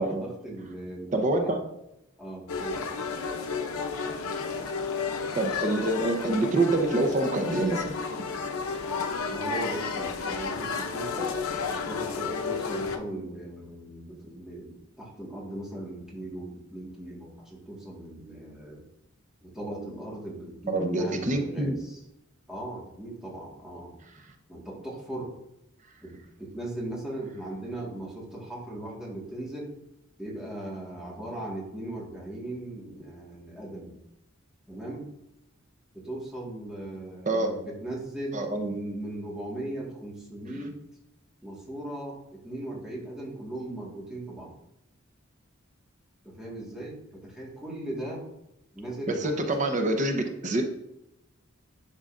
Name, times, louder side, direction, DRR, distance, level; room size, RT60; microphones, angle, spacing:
voice 1, 0.0-1.6 2.2-2.8 9.3-18.9 19.4-22.0 22.5-23.9 24.5-25.3 26.0-29.7 30.2-33.9 34.7-35.1 35.9-40.7 41.4-44.5 46.2-48.3 48.7-49.4, right 1 dB, 5° right, -4 dB, 1.7 m, -38 dB
voice 2, 1.1-1.6 5.4-8.0 20.7-21.7 37.3-37.5 38.3-38.7 49.1-50.6, right 2 dB, 35° right, 4 dB, 0.8 m, -26 dB
sound 1, 2.5-13.0, left 5 dB, 90° left, 0.7 m, -32 dB
11.0 x 4.0 x 2.5 m, 0.85 s
head